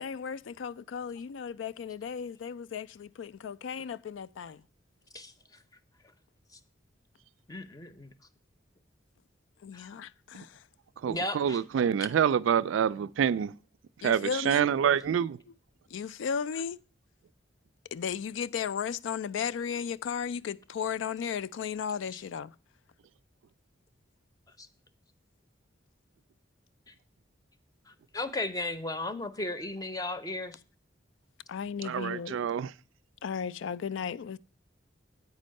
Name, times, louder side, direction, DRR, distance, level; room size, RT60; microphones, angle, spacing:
voice 1, 0.0-4.6 9.6-10.6 14.0-15.0 15.5-15.6 15.9-16.8 17.9-22.5 31.5-32.4 33.2-34.4, left 7 dB, 75° left, 0.3 m, -35 dB
voice 2, 7.5-8.1 9.7-9.9 11.0-11.6 12.0-12.1 22.1-22.2 24.6-24.7 27.9-30.6, left 2 dB, 20° left, 0.6 m, -35 dB
voice 3, 11.0-13.5 14.0-15.4 31.8-32.7, right 8 dB, 85° right, 0.3 m, -26 dB
8.4 x 5.3 x 6.3 m
head